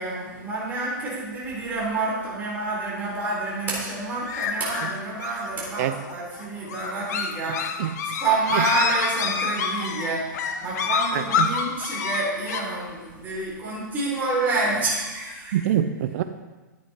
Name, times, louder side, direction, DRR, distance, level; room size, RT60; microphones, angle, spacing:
voice 1, 0.0-7.9 8.2-15.6, right 2 dB, 15° right, -6 dB, 3.9 m, -28 dB
sound 1, 4.2-12.6, left 6 dB, 55° left, 1.1 m, -28 dB
voice 2, 11.1-11.5 15.5-16.2, right 11 dB, 50° right, 10 dB, 0.6 m, -24 dB
10.5 x 8.4 x 4.4 m, 1.2 s
hypercardioid pair, 140°, 11 cm